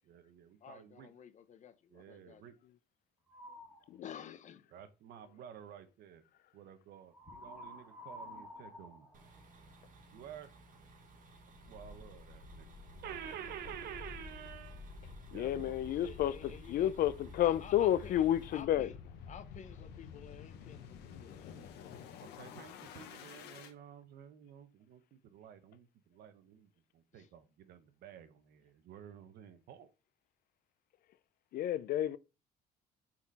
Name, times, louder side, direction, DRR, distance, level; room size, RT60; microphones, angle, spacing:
voice 1, 0.1-1.1 1.9-2.5 4.7-6.2 6.5-9.1 10.1-10.5 11.7-12.7 13.0-14.9 15.3-15.7 22.4-29.9, right 9 dB, 70° right, 1.0 m, -51 dB
voice 2, 0.6-2.4 4.0-4.6 15.8-17.1 17.4-19.0 19.3-23.2 27.1-27.3, left 8 dB, 45° left, 0.9 m, -53 dB
sound 1, 3.3-3.9 7.1-9.9, left 1 dB, 10° right, 2.4 m, -50 dB
voice 3, 3.9-4.2 15.3-18.9 31.5-32.2, left 12 dB, 60° left, 0.5 m, -31 dB
sound 2, 9.1-18.6, right 2 dB, 50° right, 1.7 m, -59 dB
sound 3, 11.5-23.7, left 5 dB, 80° left, 1.2 m, -50 dB
5.8 x 4.3 x 4.1 m
cardioid pair, 110°, 17 cm